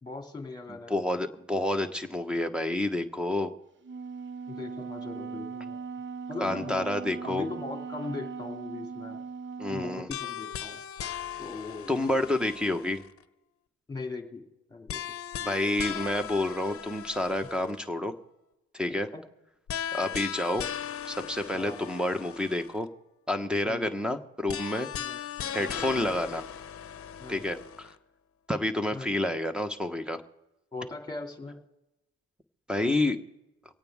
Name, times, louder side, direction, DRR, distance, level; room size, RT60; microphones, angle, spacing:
voice 1, 0.0-0.9 4.5-5.8 6.3-6.9 7.2-9.2 9.7-10.8 11.4-12.0 13.9-15.0 19.1-19.2 21.5-21.8 23.7-23.9 25.0-25.2 25.6-25.9 27.2-27.4 28.9-29.1 30.7-31.6, left 3 dB, 15° left, 3 dB, 2.5 m, -39 dB
voice 2, 0.9-3.5 6.4-7.4 9.6-10.1 11.9-13.0 15.4-18.1 18.7-19.1 19.9-20.7 21.0-22.9 23.3-24.9 25.5-26.4 27.3-27.9 28.5-30.2 32.7-33.2, left 1 dB, 5° right, 8 dB, 1.1 m, -29 dB
Wind instrument woodwind instrument, 3.8-10.1, right 5 dB, 40° right, 0.6 m, -39 dB
sound 1, 10.1-13.2 14.9-17.9 19.7-22.8 24.5-27.9, left 9 dB, 50° left, 0.8 m, -38 dB
25.5 x 9.0 x 3.6 m, 0.97 s
cardioid pair, 90°, 30 cm